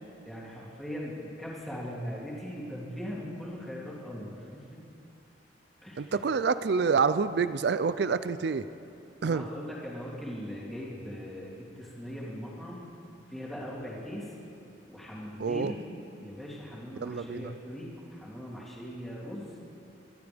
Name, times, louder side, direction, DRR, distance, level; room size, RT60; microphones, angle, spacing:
voice 1, 0.2-4.8 5.8-6.2 9.2-12.8 13.3-14.3 14.9-15.8 16.2-19.5, equal, ahead, -7 dB, 3.0 m, -40 dB
voice 2, 6.0-8.7 9.2-9.5 15.4-15.7 17.0-17.5, right 5 dB, 65° right, 14 dB, 0.4 m, -27 dB
24.0 x 13.0 x 3.5 m, 2.6 s
head